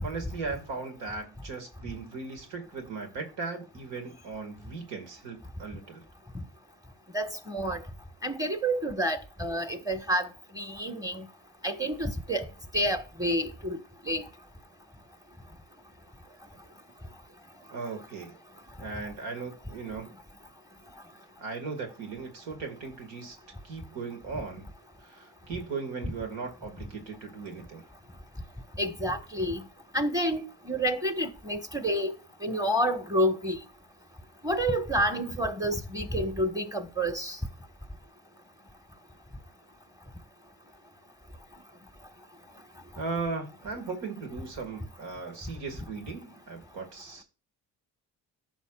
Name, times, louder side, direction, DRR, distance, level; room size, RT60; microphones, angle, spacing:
voice 1, 0.0-6.0 17.7-18.3 18.8-20.1 21.4-23.4 23.6-24.7 25.0-27.9 43.0-47.2, right 4 dB, 75° right, 2.2 m, -37 dB
voice 2, 7.1-7.8 8.2-10.3 10.5-11.3 11.6-12.5 12.7-14.2 28.8-29.6 29.9-32.1 32.4-33.6 34.4-37.4, equal, 10° right, 1.5 m, -29 dB
14.5 x 5.8 x 2.4 m
hypercardioid pair, 50°, 46 cm